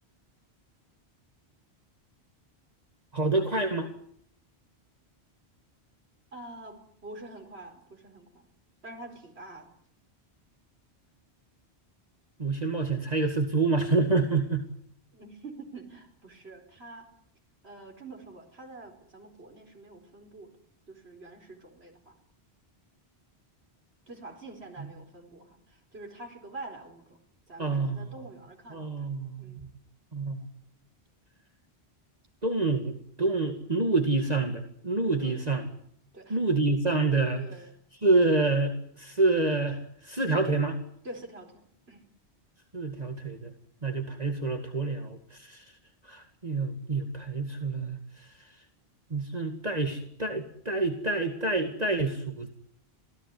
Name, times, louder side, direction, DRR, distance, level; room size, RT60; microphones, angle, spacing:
voice 1, 3.1-3.9 12.4-14.7 27.6-28.1 28.7-29.7 30.1-30.4 32.4-35.6 36.3-37.4 38.0-40.8 42.7-43.5 43.8-45.6 46.0-48.3 49.1-52.5, right 3 dB, 40° right, 4 dB, 2.4 m, -27 dB
voice 2, 6.3-8.5 8.8-9.7 15.1-17.1 17.6-20.6 20.9-22.1 24.1-27.2 27.5-29.6 35.2-35.4 36.1-36.4 37.4-37.7 41.0-42.1, right 2 dB, 70° right, 2 dB, 4.7 m, -46 dB
27.5 x 18.0 x 9.6 m, 0.65 s
omnidirectional pair, 1.1 m